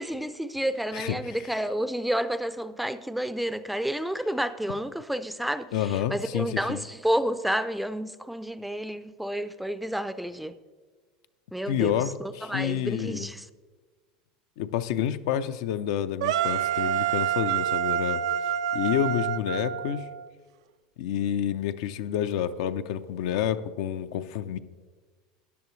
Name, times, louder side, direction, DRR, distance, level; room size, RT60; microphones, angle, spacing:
voice 1, 0.0-5.7 6.1-10.5 11.5-11.9 12.5-13.5, right 1 dB, 5° right, 0.4 m, -30 dB
voice 2, 0.9-1.4 5.7-6.8 11.7-13.3 14.6-18.2 18.7-20.1 21.0-24.6, left 10 dB, 75° left, 0.5 m, -29 dB
sound 1, 16.2-20.3, right 10 dB, 85° right, 0.4 m, -27 dB
14.0 x 9.9 x 3.1 m
supercardioid pair, 115°, 3 cm